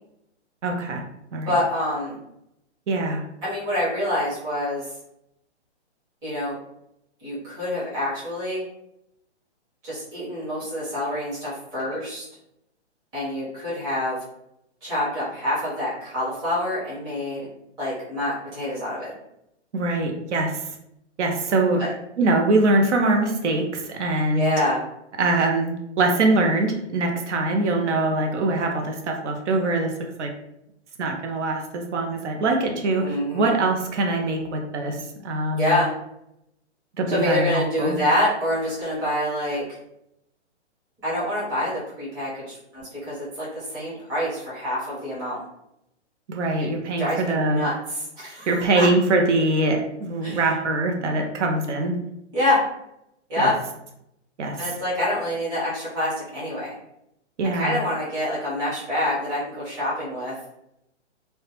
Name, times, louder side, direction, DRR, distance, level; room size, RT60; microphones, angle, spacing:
voice 1, 0.6-1.0 1.3-1.6 2.9-3.2 19.7-20.7 21.2-21.8 22.2-24.5 25.2-29.9 30.2-30.3 31.0-35.8 37.0-38.0 46.3-47.7 48.5-51.9 53.4-53.5 54.4-54.6 57.4-57.8, right 2 dB, 75° right, 2 dB, 0.6 m, -23 dB
voice 2, 1.5-2.2 3.4-4.9 6.2-6.6 7.2-8.6 9.8-12.2 13.1-14.2 14.8-17.5 17.8-19.1 21.8-21.9 24.3-24.8 33.0-33.5 35.6-35.9 37.1-39.6 41.0-45.4 47.0-47.7 48.1-48.9 50.2-50.4 52.3-52.6 53.3-53.5 54.6-56.7 57.5-60.3, left 1 dB, 10° right, -10 dB, 0.7 m, -26 dB
2.2 x 2.1 x 2.9 m, 0.81 s
hypercardioid pair, 160°, 35 cm